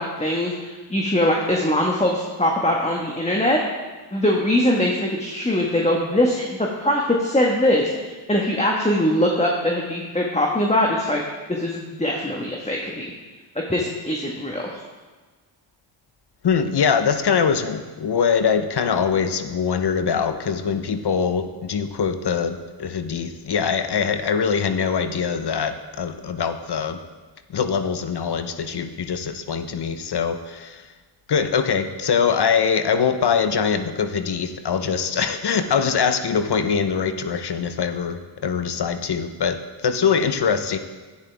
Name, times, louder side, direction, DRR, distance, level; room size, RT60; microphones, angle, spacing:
voice 1, 0.0-3.6 4.1-11.2 11.5-13.1 13.7-14.7, left 1 dB, 15° left, -1 dB, 1.5 m, -22 dB
voice 2, 16.4-27.0 27.5-30.9 31.3-40.8, left 6 dB, 55° left, 9 dB, 0.9 m, -23 dB
11.5 x 9.6 x 3.5 m, 1.3 s
supercardioid pair, 40°, 48 cm